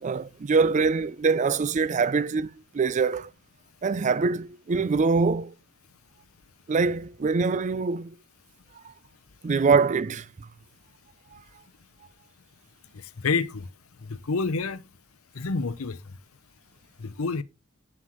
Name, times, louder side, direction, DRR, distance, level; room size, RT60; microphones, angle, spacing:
voice 1, 0.0-2.5 2.7-3.3 3.8-5.5 6.7-8.1 9.4-10.3, right 4 dB, 35° right, 0.4 m, -24 dB
voice 2, 13.2-13.7 14.0-14.8 15.3-16.0 17.0-17.4, left 4 dB, 80° left, 0.7 m, -28 dB
9.0 x 7.5 x 3.0 m
head